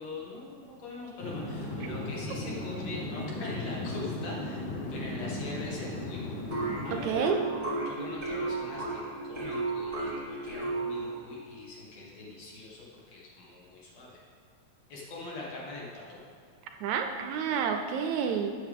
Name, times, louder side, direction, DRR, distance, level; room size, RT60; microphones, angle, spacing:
voice 1, 0.0-6.2 6.8-7.3 7.8-14.2 14.9-16.2, left 3 dB, 60° left, -4 dB, 2.8 m, -42 dB
sound 1, 1.2-7.1, left 1 dB, 80° left, 0.9 m, -36 dB
sound 2, 6.5-11.3, right 2 dB, 20° right, 2.2 m, -33 dB
voice 2, 7.0-7.4 16.8-18.6, right 7 dB, 80° right, 5 dB, 1.9 m, -29 dB
12.0 x 8.7 x 3.6 m, 2.3 s
omnidirectional pair, 3.5 m